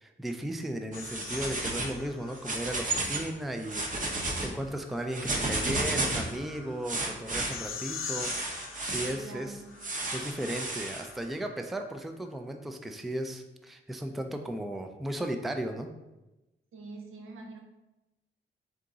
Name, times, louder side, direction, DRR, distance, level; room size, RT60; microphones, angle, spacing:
voice 1, 0.0-8.4 8.8-9.6 9.9-15.9, right 1 dB, ahead, 5 dB, 0.3 m, -36 dB
sound 1, 0.9-2.9 4.3-11.5, left 6 dB, 85° left, 0.6 m, -44 dB
sound 2, 0.9-2.0 2.3-3.3 3.6-4.5 5.1-6.3 6.8-7.5 8.2-9.2 9.8-11.0, right 2 dB, 40° right, 0.9 m, -32 dB
voice 2, 9.0-9.8 16.7-17.6, right 2 dB, 85° right, 1 dB, 0.9 m, -44 dB
3.8 x 3.5 x 3.8 m, 1.0 s
cardioid pair, 105°, 21 cm